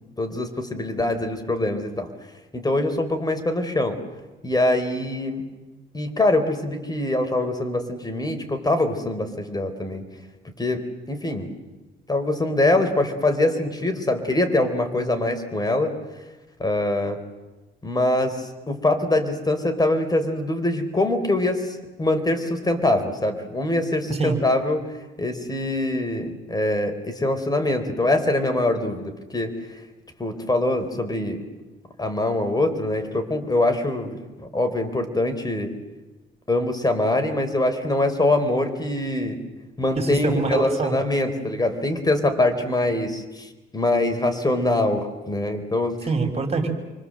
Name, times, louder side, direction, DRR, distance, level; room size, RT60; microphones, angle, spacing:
voice 1, 0.2-2.1 2.5-4.0 4.4-5.5 5.9-10.0 10.6-11.5 12.1-15.9 16.6-17.2 17.8-24.9 25.2-29.6 30.2-31.4 32.0-34.2 34.5-35.7 36.5-39.4 39.8-46.0, left 2 dB, 20° left, 6 dB, 4.4 m, -23 dB
voice 2, 40.0-41.0 46.1-46.7, right 4 dB, 30° right, 4 dB, 5.6 m, -24 dB
28.5 x 24.5 x 7.9 m, 1.1 s
cardioid pair, 90°, 20 cm